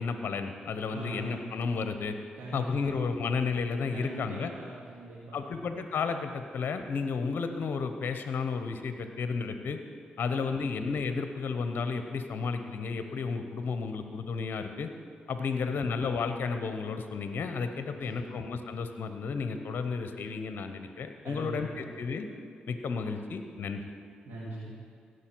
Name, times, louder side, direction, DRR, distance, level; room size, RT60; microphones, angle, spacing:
voice 1, 0.0-2.2 2.5-4.5 5.3-9.8 10.2-14.9 15.3-22.3 22.7-23.8, left 5 dB, 60° left, 8 dB, 0.8 m, -32 dB
voice 2, 0.9-1.5 2.4-3.0 3.9-5.5 10.2-10.8 15.7-16.0 17.9-18.3 21.2-21.9 24.2-24.7, right 2 dB, 80° right, -8 dB, 2.1 m, -42 dB
17.0 x 6.5 x 4.6 m, 2.3 s
supercardioid pair, 45°, 4 cm